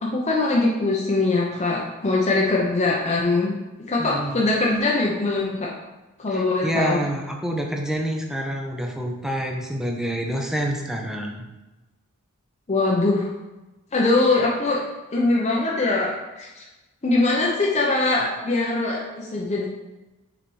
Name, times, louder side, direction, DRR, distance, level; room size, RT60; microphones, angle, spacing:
voice 1, 0.0-3.5 3.9-5.7 6.2-7.0 12.7-13.3 13.9-14.8 15.1-16.6 17.0-19.7, left 2 dB, 30° left, -3 dB, 0.7 m, -22 dB
voice 2, 4.0-4.4 6.3-11.5, equal, ahead, 1 dB, 0.6 m, -27 dB
6.1 x 4.1 x 4.6 m, 1.1 s
head